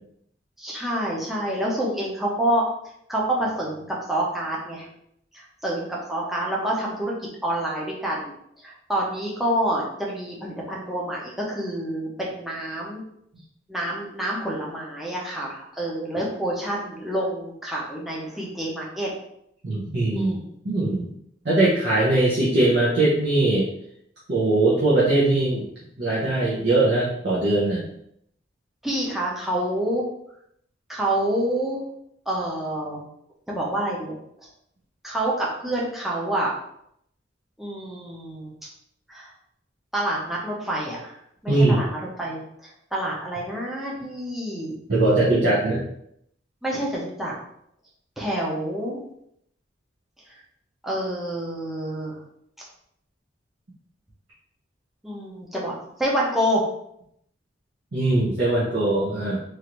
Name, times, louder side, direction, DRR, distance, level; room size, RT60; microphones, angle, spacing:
voice 1, 0.6-2.6 3.1-4.9 5.3-7.1 7.4-8.3 8.6-13.0 13.7-19.1 20.1-20.5 28.8-30.0 30.9-31.8 32.3-33.0 33.5-34.2 35.0-36.5 37.6-38.5 39.1-39.3 39.9-41.2 41.4-44.7 46.6-47.3 48.2-49.0 50.8-52.2 55.0-56.6, right 1 dB, ahead, -5 dB, 0.6 m, -27 dB
voice 2, 19.6-20.3 20.6-21.1 21.4-23.7 24.3-25.6 26.0-27.8 41.5-41.8 44.9-45.8 57.9-59.4, right 2 dB, 60° right, -7 dB, 0.7 m, -21 dB
3.1 x 2.5 x 2.9 m, 0.73 s
head